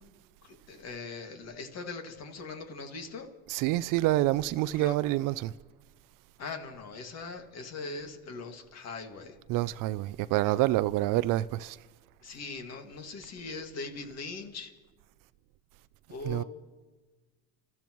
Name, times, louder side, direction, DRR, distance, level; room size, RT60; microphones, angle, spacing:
voice 1, 0.4-3.3 4.7-5.0 6.4-9.4 12.2-14.7 16.1-16.4, left 4 dB, 45° left, 2.1 m, -41 dB
voice 2, 3.5-5.5 9.5-11.8 16.3-16.4, right 16 dB, 60° right, 0.5 m, -27 dB
30.0 x 14.0 x 3.1 m
supercardioid pair, 115°, 37 cm